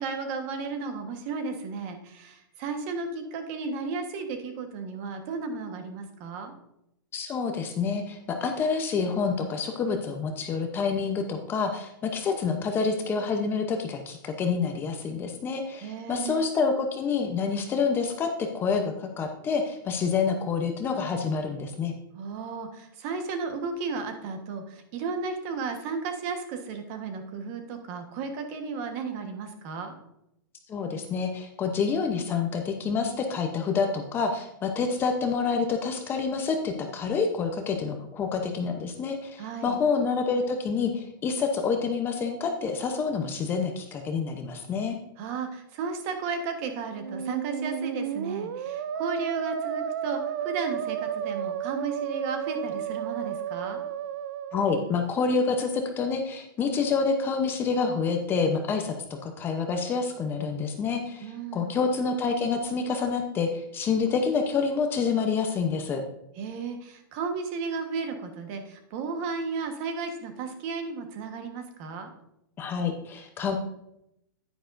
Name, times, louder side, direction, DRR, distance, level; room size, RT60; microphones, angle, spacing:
voice 1, 0.0-6.5 15.8-16.4 22.1-29.9 39.4-39.8 45.2-53.8 61.2-61.8 66.4-72.1, right 4 dB, 35° right, 6 dB, 1.3 m, -34 dB
voice 2, 7.1-21.9 30.7-45.0 54.5-58.9 59.2-66.0 72.6-73.6, left 5 dB, 20° left, 5 dB, 0.8 m, -27 dB
Musical instrument, 46.9-55.0, right 8 dB, 55° right, 0.6 m, -32 dB
10.0 x 9.7 x 2.6 m, 0.81 s
hypercardioid pair, 155°, 12 cm